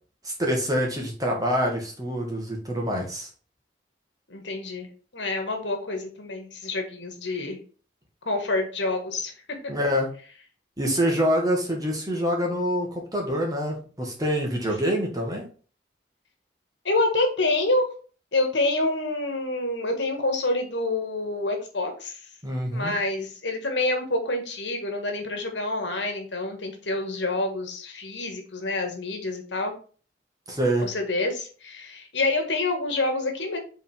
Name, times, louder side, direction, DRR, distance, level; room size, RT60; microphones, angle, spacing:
voice 1, 0.2-3.3 9.7-10.1 10.8-15.5 22.4-22.9 30.5-30.9, equal, 20° right, 0 dB, 1.6 m, -26 dB
voice 2, 4.3-4.9 5.1-7.6 8.2-9.3 16.8-17.9 18.3-22.2 22.7-29.7 30.8-33.6, left 2 dB, 80° left, 4 dB, 1.6 m, -27 dB
5.1 x 3.8 x 5.3 m, 0.40 s
head